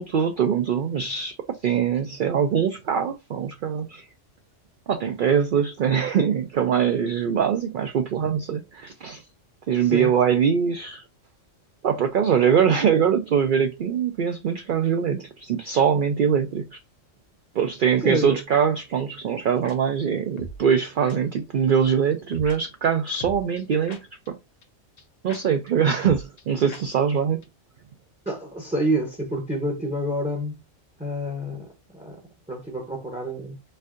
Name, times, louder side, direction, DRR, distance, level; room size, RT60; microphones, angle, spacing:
voice 1, 0.0-1.3 1.6-4.0 4.9-9.2 9.7-11.0 11.8-16.6 17.5-24.0 25.2-27.4, right 7 dB, 60° right, 0.5 m, -22 dB
voice 2, 9.8-10.1 18.0-18.4 28.3-30.6 31.0-32.2 32.5-33.6, right 1 dB, 5° right, 0.6 m, -28 dB
sound 1, 19.6-19.8 20.4-20.6 21.1-21.2 22.3-22.6 23.2-24.3 24.6-24.7 25.0-25.1 25.3-25.4 25.7-25.8 26.0-26.4 26.7-26.8 27.1-27.2 27.4-27.5, equal, 40° left, 0.6 m, -39 dB
4.3 x 2.6 x 2.4 m
omnidirectional pair, 1.3 m